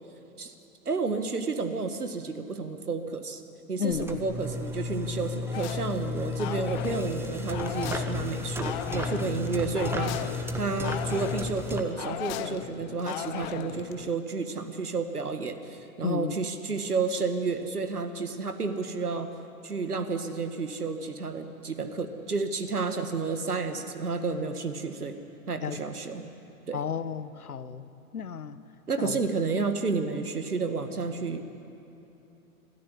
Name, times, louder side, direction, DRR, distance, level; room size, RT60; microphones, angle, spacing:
voice 1, 0.9-3.4 3.7-10.2 10.6-19.3 19.6-25.2 25.5-26.2 26.7-26.8 28.9-31.4, right 4 dB, 85° right, 8 dB, 1.7 m, -31 dB
voice 2, 3.8-4.2 6.5-6.6 16.0-16.3 25.6-25.8 26.7-28.6 29.0-29.2, left 7 dB, 75° left, 14 dB, 1.0 m, -33 dB
sound 1, 3.9-11.8, left 2 dB, 5° right, 1.0 m, -33 dB
sound 2, 5.5-14.1, left 13 dB, 30° left, 0.6 m, -38 dB
21.5 x 13.5 x 10.0 m, 2.9 s
figure-of-eight pair, 110°, 44 cm